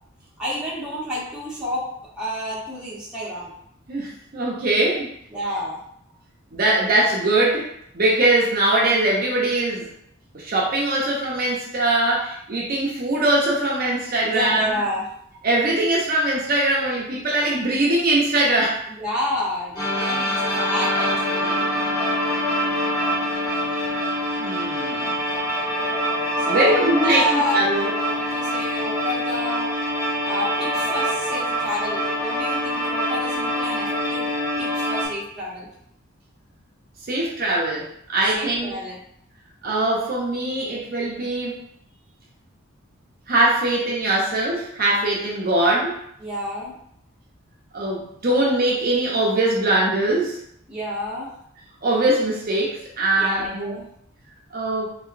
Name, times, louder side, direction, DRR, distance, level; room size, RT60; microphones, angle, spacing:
voice 1, 0.4-1.9 2.2-3.5 5.3-5.8 14.2-15.0 19.0-21.6 26.4-29.7 30.2-34.3 34.6-35.7 38.3-39.0 46.2-46.7 50.7-51.3 53.1-53.9, left 1 dB, 5° right, -8 dB, 0.8 m, -29 dB
voice 2, 3.9-5.1 6.5-9.9 10.3-14.6 15.4-18.8 24.4-25.1 26.4-27.9 37.1-38.8 39.6-41.6 43.3-46.0 47.7-50.4 51.8-53.8 54.5-54.9, right 1 dB, 45° right, -4 dB, 0.7 m, -22 dB
sound 1, 19.8-35.1, equal, 20° left, 1.3 m, -24 dB
3.0 x 2.9 x 2.5 m, 0.70 s
head